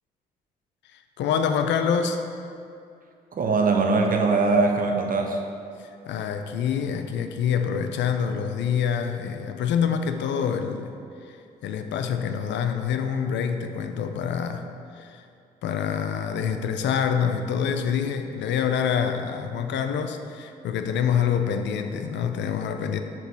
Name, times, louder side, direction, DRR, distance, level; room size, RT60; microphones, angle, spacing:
voice 1, 0.9-2.2 5.8-10.9 11.2-14.7 14.9-15.2 15.6-23.0, left 7 dB, 70° left, 7 dB, 0.4 m, -26 dB
voice 2, 3.3-5.4, right 3 dB, 45° right, 2 dB, 0.8 m, -21 dB
5.9 x 3.0 x 5.2 m, 2.5 s
hypercardioid pair, 45°, 20 cm